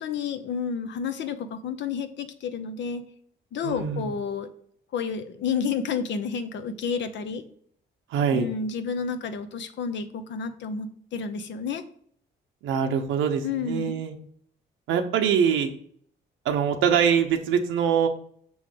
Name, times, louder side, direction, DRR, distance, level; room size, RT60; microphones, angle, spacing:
voice 1, 0.0-3.0 3.5-4.5 4.9-7.4 8.3-11.8 13.4-14.0, left 6 dB, 65° left, 9 dB, 0.8 m, -30 dB
voice 2, 3.6-4.1 8.1-8.5 12.6-14.2 14.9-15.7 16.4-18.1, right 7 dB, 90° right, 4 dB, 0.7 m, -23 dB
6.2 x 3.2 x 5.2 m, 0.63 s
cardioid pair, 90°, 20 cm